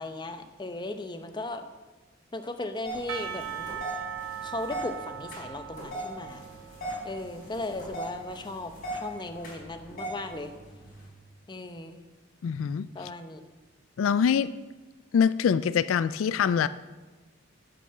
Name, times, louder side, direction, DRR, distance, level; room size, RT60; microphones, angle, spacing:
voice 1, 0.0-1.6 2.3-3.7 4.4-6.5 7.0-10.5 11.5-12.0 12.9-13.4, left 2 dB, 20° left, 8 dB, 0.7 m, -37 dB
sound 1, 2.8-11.1, right 1 dB, 50° left, 4.2 m, -40 dB
Percussion / Church bell, 3.1-8.3, right 9 dB, 75° right, 1.2 m, -40 dB
voice 2, 12.4-12.9 14.0-14.5 15.1-16.7, left 7 dB, 80° left, 16 dB, 0.3 m, -24 dB
10.0 x 6.7 x 6.5 m, 1.2 s
head